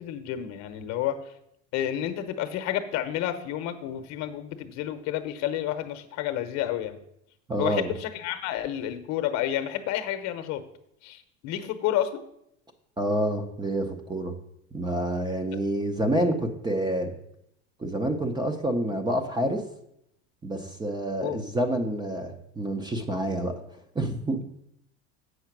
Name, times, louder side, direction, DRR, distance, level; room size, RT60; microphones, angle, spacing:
voice 1, 0.0-1.3 1.7-7.0 7.6-10.6 11.0-12.2 21.2-21.4, left 11 dB, 50° left, 9 dB, 1.0 m, -30 dB
voice 2, 7.5-7.9 13.0-14.3 14.7-17.1 17.8-19.6 20.4-23.5 23.9-24.4, right 1 dB, 10° right, 5 dB, 0.7 m, -28 dB
7.9 x 5.8 x 6.0 m, 0.76 s
supercardioid pair, 140°, 35 cm